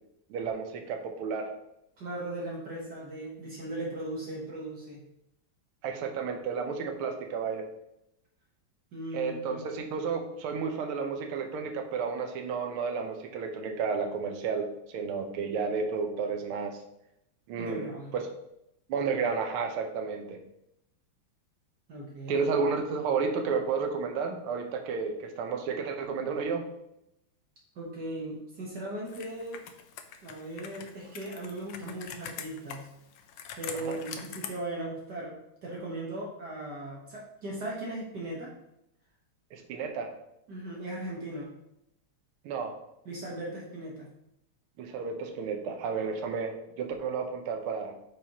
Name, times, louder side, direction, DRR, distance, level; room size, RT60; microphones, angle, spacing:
voice 1, 0.3-1.5 5.8-7.6 9.1-14.6 14.9-16.8 17.5-17.8 18.1-18.2 18.9-20.4 22.3-26.6 33.8-34.0 39.5-40.1 42.4-42.7 44.8-47.9, right 5 dB, 80° right, 4 dB, 1.7 m, -32 dB
voice 2, 2.0-5.0 8.9-9.6 17.6-18.1 21.9-22.5 27.8-29.6 30.2-32.9 33.6-35.3 35.6-38.5 40.5-41.5 43.1-44.1, right 1 dB, 55° right, -4 dB, 1.7 m, -38 dB
Computer keyboard, 29.1-34.5, left 8 dB, 85° left, 1.6 m, -44 dB
8.7 x 4.9 x 2.9 m, 0.82 s
omnidirectional pair, 2.4 m